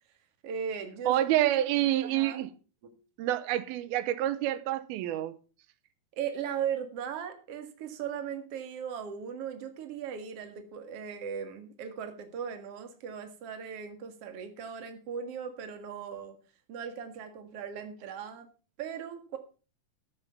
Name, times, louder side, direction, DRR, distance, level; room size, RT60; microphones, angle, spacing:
voice 1, 0.4-1.5 2.0-2.5 2.8-3.0 6.1-16.4 16.7-18.5 18.8-19.4, right 7 dB, 50° right, 2.3 m, -38 dB
voice 2, 1.1-2.5 3.2-5.4, right 13 dB, 90° right, 2.6 m, -27 dB
14.5 x 7.0 x 5.7 m
omnidirectional pair, 4.2 m